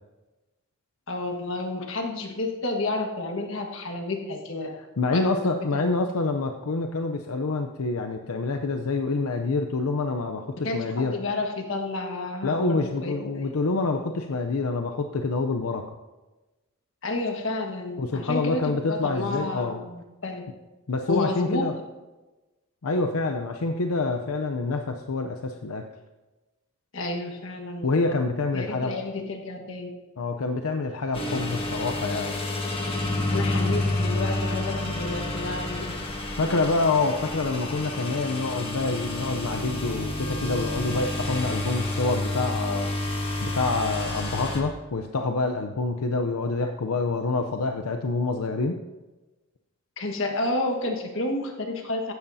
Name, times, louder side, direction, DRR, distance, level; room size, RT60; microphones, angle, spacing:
voice 1, 1.1-4.7 5.1-5.9 10.6-13.5 17.0-20.4 21.1-21.6 26.9-28.0 28.5-29.9 33.3-35.9 50.0-52.1, left 2 dB, 60° left, 2 dB, 1.6 m, -30 dB
voice 2, 5.0-11.2 12.4-15.9 18.0-19.8 20.9-21.7 22.8-25.9 27.8-29.0 30.2-32.4 36.2-42.9 43.4-48.8, left 3 dB, 90° left, 5 dB, 0.6 m, -27 dB
sound 1, 31.1-44.6, left 2 dB, 25° left, 1.5 m, -29 dB
15.5 x 13.0 x 2.7 m, 1.2 s
head